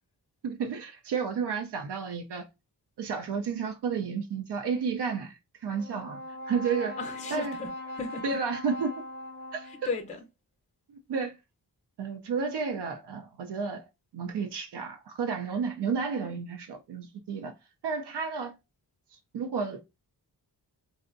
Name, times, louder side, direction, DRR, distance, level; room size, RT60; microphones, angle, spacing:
voice 1, 0.4-2.5 3.0-5.3 5.6-6.2 6.5-7.0 7.3-7.6 8.2-8.9 9.5-9.7 10.9-11.4 12.0-13.8 14.1-17.5 17.8-18.5 19.1-19.8, right 5 dB, 75° right, 0.6 m, -31 dB
Brass instrument, 5.7-10.1, left 1 dB, 25° right, 0.8 m, -40 dB
voice 2, 7.0-8.4 9.7-10.2, left 4 dB, 20° left, 0.4 m, -36 dB
2.6 x 2.1 x 2.4 m
wide cardioid pair, 85°, 41 cm